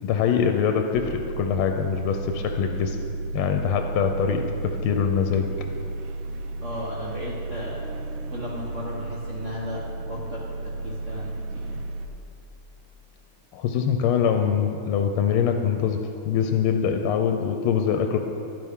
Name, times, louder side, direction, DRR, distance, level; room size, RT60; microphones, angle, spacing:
voice 1, 0.0-3.0 3.3-5.5 13.5-16.0 16.2-18.2, left 7 dB, 85° left, 5 dB, 1.5 m, -23 dB
sound 1, 0.9-12.1, right 2 dB, 75° right, 0.7 m, -33 dB
voice 2, 6.6-7.8 8.3-11.8, left 1 dB, 40° right, -5 dB, 1.3 m, -36 dB
11.5 x 10.5 x 3.6 m, 2.7 s
omnidirectional pair, 2.3 m